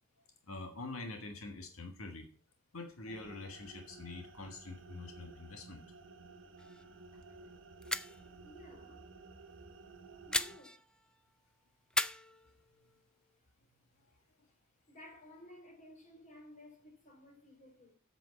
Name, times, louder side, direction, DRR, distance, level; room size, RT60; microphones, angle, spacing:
voice 1, 0.5-2.3 2.7-5.8 8.2-8.3, left 2 dB, 85° left, 1.5 m, -45 dB
sound 1, 3.1-10.6, right 3 dB, 65° right, 1.4 m, -54 dB
sound 2, 6.6-7.0 7.2-7.3 7.8-8.3 10.3-11.2 11.9-13.0, left 1 dB, 5° left, 0.4 m, -38 dB
voice 2, 7.1-7.5 8.4-9.1 10.2-10.8 13.4-13.5 14.4-14.5 14.8-17.9, left 1 dB, 35° left, 3.5 m, -56 dB
8.4 x 7.1 x 6.9 m
head